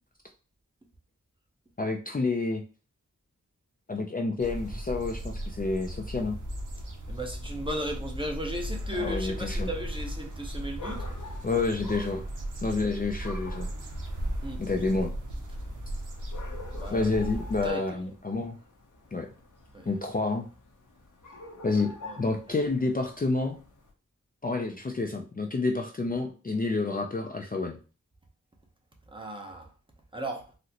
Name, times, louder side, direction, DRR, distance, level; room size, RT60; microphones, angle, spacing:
voice 1, 1.8-2.6 3.9-6.4 9.0-9.7 11.4-12.2 12.6-13.7 14.6-15.1 16.9-18.6 19.1-19.3 19.9-20.5 21.6-23.6 24.4-27.8, left 3 dB, 30° left, 0.4 m, -29 dB
sound 1, 4.4-17.7, equal, 70° right, 0.7 m, -36 dB
voice 2, 7.1-11.1 14.4-14.6 16.7-17.1 17.6-18.1 19.7-19.9 22.0-22.2 22.5-22.6 29.1-29.7 30.1-30.5, right 1 dB, 15° right, 0.7 m, -36 dB
sound 2, 9.1-23.9, left 2 dB, 75° left, 0.8 m, -48 dB
3.8 x 2.1 x 2.8 m
wide cardioid pair, 70°, 31 cm